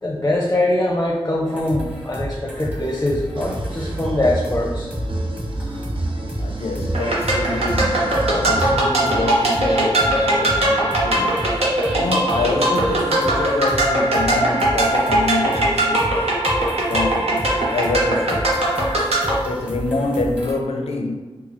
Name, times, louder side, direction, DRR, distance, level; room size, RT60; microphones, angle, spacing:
voice 1, 0.0-4.9, left 1 dB, 25° left, 0.5 m, -22 dB
sound 1, 1.5-20.5, equal, 10° right, 1.3 m, -32 dB
sound 2, 3.3-8.7, right 2 dB, 60° right, 0.5 m, -28 dB
voice 2, 6.4-11.5 11.9-16.3 16.9-18.6 19.4-21.1, left 3 dB, 80° left, 0.4 m, -26 dB
sound 3, 6.9-19.4, right 1 dB, 85° right, 0.8 m, -20 dB
3.9 x 2.3 x 3.0 m
cardioid pair, 40°, 10 cm